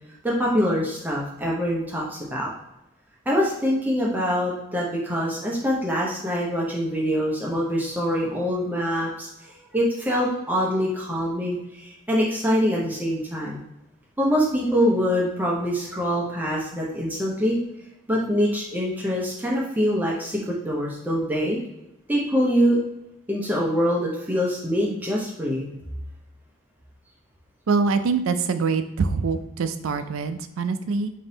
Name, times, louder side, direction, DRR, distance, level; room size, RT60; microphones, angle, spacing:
voice 1, 0.2-2.5 3.3-13.6 14.2-17.6 18.1-21.6 22.1-22.8 23.3-25.7, equal, 10° right, -4 dB, 0.6 m, -24 dB
voice 2, 27.7-31.1, right 4 dB, 80° right, 9 dB, 0.4 m, -24 dB
3.6 x 2.7 x 3.9 m, 0.90 s
head